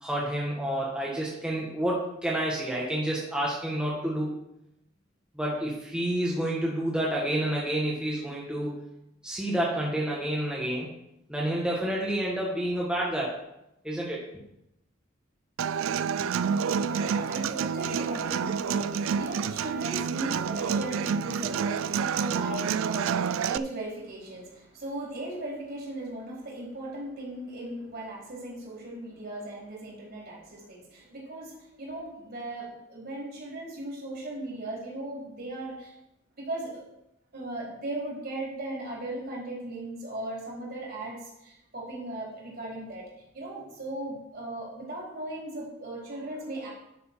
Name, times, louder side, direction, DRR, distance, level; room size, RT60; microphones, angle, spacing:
voice 1, 0.0-4.3 5.4-8.8 9.2-10.9 11.3-13.3 13.8-14.2, right 1 dB, 5° right, -5 dB, 1.4 m, -29 dB
Human voice / Acoustic guitar, 15.6-23.6, right 6 dB, 85° right, 0.4 m, -28 dB
voice 2, 16.6-36.0 36.4-36.8 37.3-43.0 43.3-46.7, right 1 dB, 50° right, -4 dB, 3.9 m, -37 dB
11.0 x 6.5 x 4.5 m, 0.85 s
head